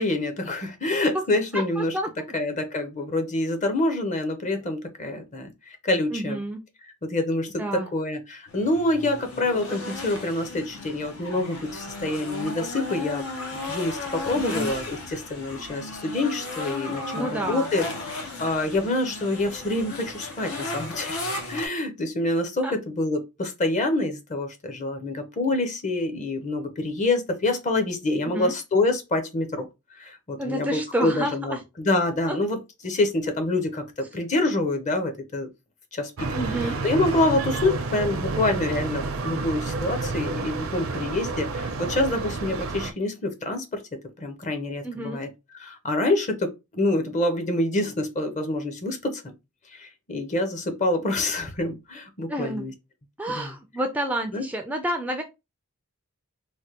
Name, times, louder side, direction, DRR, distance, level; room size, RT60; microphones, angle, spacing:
voice 1, 0.0-1.9 2.3-5.5 5.8-6.4 7.0-13.2 13.5-21.2 21.5-29.7 30.0-32.6 32.8-35.5 35.9-43.8 44.2-49.3 49.7-52.7 53.3-53.5 54.3-54.4, left 2 dB, 35° left, 0.6 m, -26 dB
voice 2, 1.5-2.1 6.1-6.6 7.6-7.9 14.3-14.7 17.1-17.7 22.6-22.7 28.3-28.5 30.4-31.6 32.3-32.4 36.3-36.8 44.8-45.3 52.3-52.7 53.2-55.2, right 1 dB, 5° right, 0.3 m, -29 dB
sound 1, 8.5-21.7, left 2 dB, 85° left, 0.8 m, -35 dB
sound 2, 36.2-42.9, right 3 dB, 70° right, 0.5 m, -30 dB
3.2 x 2.1 x 2.8 m
head